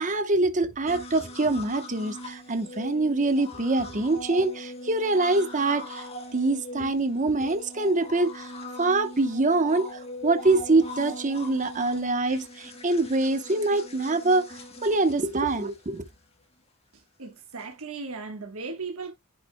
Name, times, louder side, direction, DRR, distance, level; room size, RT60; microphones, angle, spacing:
voice 1, 0.0-6.0 6.3-8.5 8.8-16.0, right 2 dB, 35° right, 1.0 m, -25 dB
sound 1, 0.9-16.1 17.6-17.7, left 1 dB, 30° left, 1.6 m, -41 dB
voice 2, 17.2-19.1, right 4 dB, 75° right, 1.4 m, -36 dB
10.5 x 5.0 x 2.2 m
head